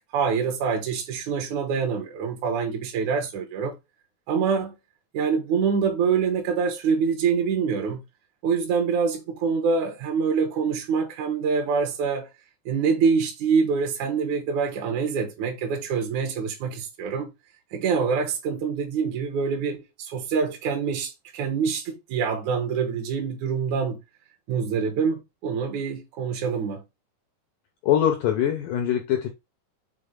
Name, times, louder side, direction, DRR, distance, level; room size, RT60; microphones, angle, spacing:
voice 1, 0.1-3.7 4.3-4.8 5.1-8.0 8.4-12.3 12.7-17.3 17.7-24.0 24.5-26.8, right 6 dB, 65° right, 2.0 m, -25 dB
voice 2, 27.8-29.3, left 10 dB, 85° left, 1.8 m, -23 dB
6.8 x 3.7 x 3.7 m
omnidirectional pair, 4.9 m